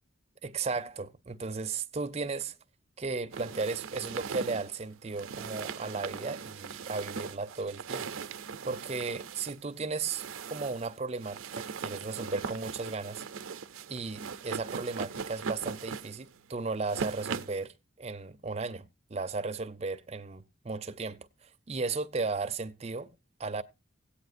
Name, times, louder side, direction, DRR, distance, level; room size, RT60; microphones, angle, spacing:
voice 1, 0.4-2.6 3.0-8.1 8.6-13.2 13.9-23.1 23.4-23.6, right 4 dB, 30° right, 0.5 m, -35 dB
sound 1, 3.3-17.6, right 5 dB, 80° right, 0.5 m, -40 dB
17.0 x 8.6 x 2.5 m
head